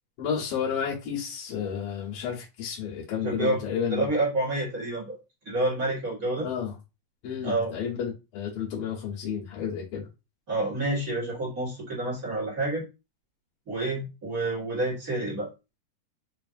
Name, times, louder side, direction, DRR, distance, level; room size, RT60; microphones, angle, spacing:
voice 1, 0.2-4.1 6.4-6.7 7.2-10.1, left 7 dB, 85° left, 2.9 m, -31 dB
voice 2, 3.2-3.6 3.9-5.2 5.4-6.5 7.4-7.7 10.5-12.8 13.7-15.5, right 2 dB, 40° right, 1.3 m, -28 dB
6.1 x 2.5 x 2.5 m
omnidirectional pair, 3.9 m